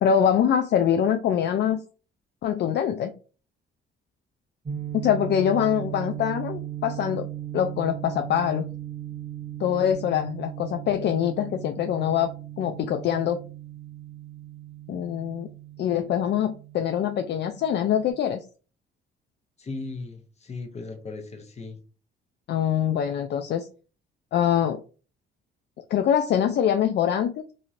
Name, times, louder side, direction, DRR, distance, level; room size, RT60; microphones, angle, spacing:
voice 1, 0.0-1.8 2.4-3.1 4.9-7.3 7.5-8.7 9.6-12.3 12.6-13.4 14.9-15.5 15.8-18.4 22.5-23.7 24.3-24.8 25.9-27.4, left 9 dB, 60° left, 6 dB, 0.4 m, -24 dB
sound 1, 4.7-18.1, right 12 dB, 30° right, 0.8 m, -37 dB
voice 2, 19.6-21.8, left 3 dB, 35° left, 6 dB, 0.9 m, -37 dB
3.0 x 2.7 x 2.5 m, 0.36 s
cardioid pair, 90°, 20 cm